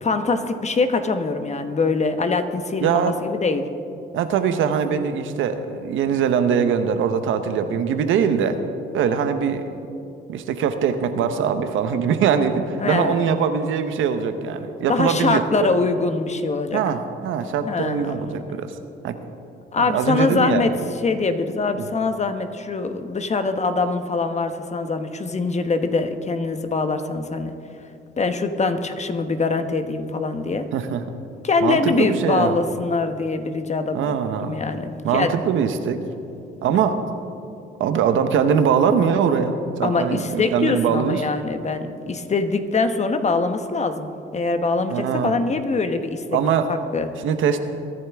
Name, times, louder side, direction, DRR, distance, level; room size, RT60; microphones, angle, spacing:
voice 1, 0.0-3.7 12.8-13.3 14.9-16.8 17.6-18.2 19.7-20.7 21.0-27.5 28.2-30.6 31.4-35.3 39.8-46.4 46.7-47.1, left 3 dB, 35° left, 8 dB, 1.1 m, -23 dB
voice 2, 2.8-3.1 4.1-8.6 8.9-9.6 10.3-15.7 16.7-18.7 19.0-19.2 19.8-20.6 21.7-21.9 30.7-31.0 31.6-32.6 33.9-34.6 35.0-36.0 36.6-37.0 37.8-39.5 39.8-41.2 44.9-45.3 46.3-46.7 47.2-47.6, right 7 dB, 80° right, 8 dB, 1.0 m, -22 dB
22.5 x 11.0 x 3.5 m, 2.7 s
cardioid pair, 90°, 20 cm